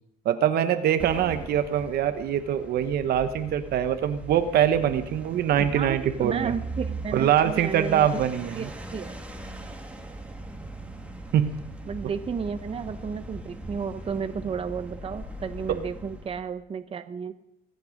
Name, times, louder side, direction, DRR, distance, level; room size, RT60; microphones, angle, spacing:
voice 1, 0.2-6.6 7.1-8.7 11.3-11.5, right 10 dB, 70° right, 9 dB, 1.1 m, -23 dB
sound 1, 1.0-16.5, right 1 dB, 5° right, 1.8 m, -40 dB
voice 2, 5.6-8.2 8.5-9.1 11.9-17.3, right 6 dB, 35° right, 9 dB, 1.1 m, -33 dB
24.5 x 9.3 x 5.2 m, 0.78 s
cardioid pair, 110°, 17 cm